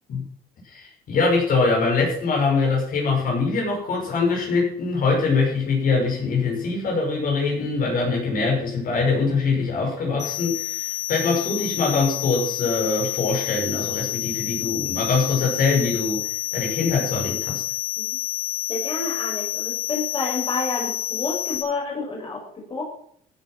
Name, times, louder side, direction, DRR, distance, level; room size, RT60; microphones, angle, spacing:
voice 1, 0.6-17.6, left 4 dB, 55° left, -1 dB, 6.1 m, -23 dB
sound 1, 10.2-21.6, left 16 dB, 75° left, 6.1 m, -29 dB
voice 2, 18.7-22.8, left 3 dB, 30° left, -2 dB, 5.9 m, -29 dB
15.0 x 8.6 x 6.1 m, 0.64 s
cardioid pair, 110°, 17 cm